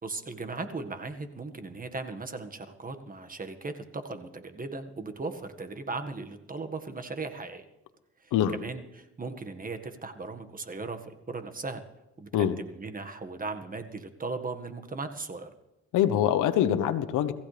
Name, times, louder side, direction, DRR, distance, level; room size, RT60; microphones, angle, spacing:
voice 1, 0.0-7.7 8.2-11.8 12.2-15.5, right 3 dB, 30° right, 7 dB, 1.8 m, -37 dB
voice 2, 15.9-17.3, left 10 dB, 90° left, 11 dB, 1.2 m, -24 dB
26.5 x 15.0 x 3.4 m, 0.95 s
cardioid pair, 90°, 30 cm